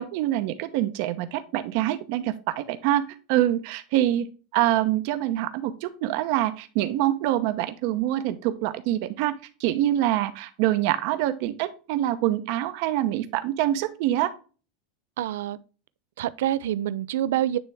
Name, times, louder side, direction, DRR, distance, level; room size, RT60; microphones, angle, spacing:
voice 1, 0.0-3.0 3.3-4.3 4.5-9.3 9.6-14.3, right 13 dB, 55° right, 0.8 m, -25 dB
voice 2, 15.2-15.6 16.2-17.6, right 12 dB, 80° right, 0.4 m, -26 dB
9.5 x 3.4 x 3.3 m
supercardioid pair, 160°, 0 cm